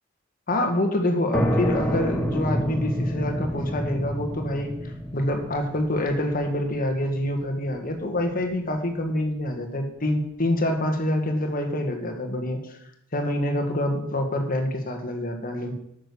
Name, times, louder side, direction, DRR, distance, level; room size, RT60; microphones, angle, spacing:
voice 1, 0.5-12.8 13.1-15.7, left 1 dB, 45° left, 4 dB, 1.5 m, -26 dB
sound 1, 1.3-8.7, equal, 5° left, 1.2 m, -29 dB
9.2 x 6.6 x 6.9 m, 0.77 s
head